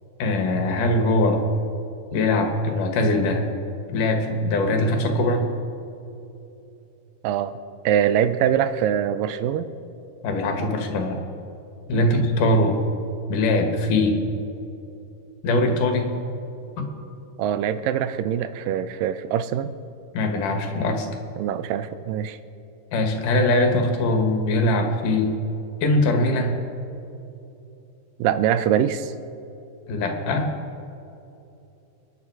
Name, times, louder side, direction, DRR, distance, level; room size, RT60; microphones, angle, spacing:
voice 1, 0.2-1.4 2.1-3.4 3.9-5.4 10.2-11.2 11.9-12.8 13.3-14.2 15.4-16.1 16.8-16.9 20.1-21.1 22.9-25.3 25.8-26.6 29.9-30.5, left 2 dB, 70° left, 3 dB, 3.1 m, -21 dB
voice 2, 7.2-7.6 7.9-9.7 11.9-12.1 17.4-19.7 21.4-22.4 28.2-29.1, right 9 dB, 85° right, 12 dB, 2.4 m, -23 dB
28.5 x 10.0 x 4.7 m, 2.9 s
omnidirectional pair, 3.9 m